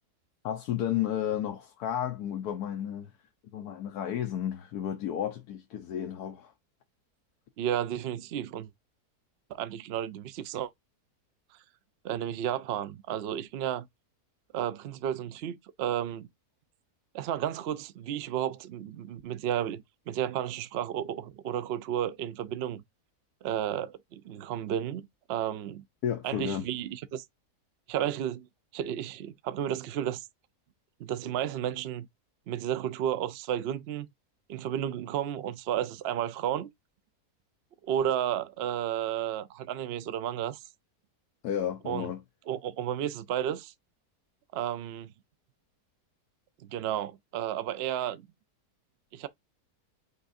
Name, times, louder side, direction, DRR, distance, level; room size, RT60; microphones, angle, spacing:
voice 1, 0.4-3.1 3.5-6.5 26.0-26.7 41.4-42.2, left 10 dB, 75° left, 1.2 m, -32 dB
voice 2, 7.6-8.7 9.5-10.7 12.0-13.9 14.5-16.3 17.1-22.8 23.4-25.8 26.2-27.3 27.9-28.5 28.7-30.2 31.0-32.1 32.5-34.1 34.5-36.7 37.8-40.6 41.8-42.1 42.5-43.7 44.5-45.1 46.7-48.3 49.1-49.3, right 10 dB, 75° right, 0.5 m, -32 dB
5.5 x 3.6 x 2.6 m
omnidirectional pair, 1.7 m